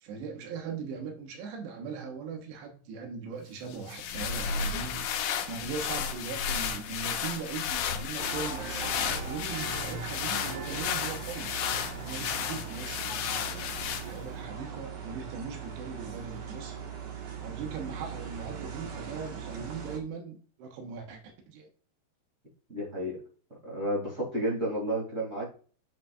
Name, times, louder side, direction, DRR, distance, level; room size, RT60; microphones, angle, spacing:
voice 1, 0.0-13.7 14.0-16.8 17.1-21.7, right 5 dB, 90° right, 3 dB, 3.4 m, -40 dB
sound 1, 3.7-14.3, left 7 dB, 85° left, 1.8 m, -33 dB
sound 2, 8.2-20.0, right 6 dB, 60° right, 2.4 m, -39 dB
voice 2, 22.7-23.2 23.6-25.5, right 1 dB, 25° right, -4 dB, 2.1 m, -31 dB
7.8 x 6.9 x 2.4 m, 0.40 s
omnidirectional pair, 4.8 m